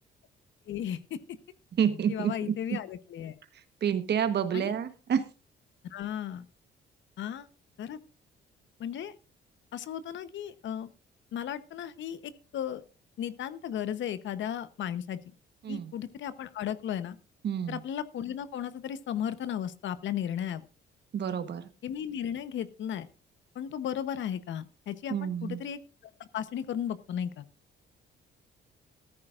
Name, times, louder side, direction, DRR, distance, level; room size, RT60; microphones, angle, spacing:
voice 1, 0.7-1.2 2.1-3.3 4.5-4.7 5.9-6.4 7.2-7.5 7.8-8.0 8.8-9.1 9.7-10.9 11.3-12.8 13.2-15.2 15.7-17.2 17.7-20.6 21.8-23.1 23.5-25.8 26.2-27.4, left 9 dB, 70° left, 13 dB, 1.0 m, -35 dB
voice 2, 1.8-2.8 3.8-5.2 15.6-15.9 17.4-17.8 21.1-21.7 25.1-25.6, right 8 dB, 60° right, 11 dB, 1.3 m, -29 dB
14.0 x 13.5 x 2.5 m, 0.32 s
cardioid pair, 90°, 20 cm